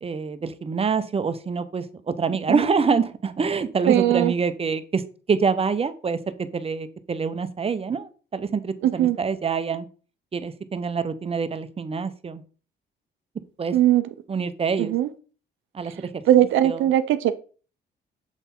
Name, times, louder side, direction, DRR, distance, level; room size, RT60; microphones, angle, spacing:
voice 1, 0.0-5.0 5.3-9.9 10.3-12.4 13.6-13.7 14.3-14.9 15.7-16.9, right 5 dB, 30° right, 12 dB, 0.6 m, -26 dB
voice 2, 3.9-4.3 8.8-9.2 13.7-14.0 14.9-15.1 16.3-17.4, right 12 dB, 80° right, 12 dB, 0.5 m, -19 dB
7.1 x 3.6 x 4.2 m, 0.39 s
cardioid pair, 90°, 20 cm